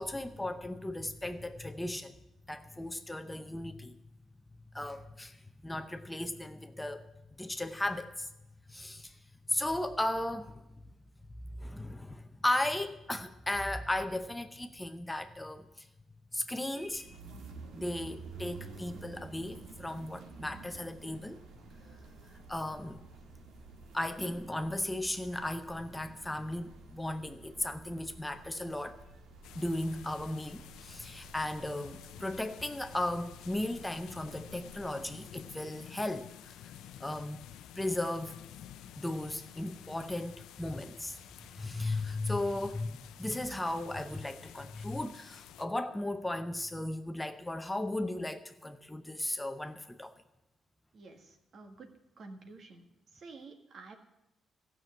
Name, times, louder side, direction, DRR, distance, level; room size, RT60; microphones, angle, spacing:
voice 1, 0.0-2.2 2.5-3.9 4.7-5.4 5.6-7.0 7.4-8.3 8.7-9.1 9.5-10.6 11.6-15.9 16.3-17.2 17.7-21.4 22.5-23.0 23.9-29.0 29.5-36.5 37.0-37.4 37.8-38.4 39.0-41.2 41.6-50.1, left 1 dB, 10° left, 8 dB, 0.7 m, -36 dB
sound 1, 16.8-35.3, right 3 dB, 80° right, 1.7 m, -51 dB
sound 2, 29.4-45.7, left 10 dB, 90° left, 0.5 m, -51 dB
voice 2, 50.9-52.8 53.1-54.0, right 3 dB, 55° right, 5 dB, 1.7 m, -50 dB
14.0 x 6.1 x 7.8 m, 0.91 s
cardioid pair, 90°, 0 cm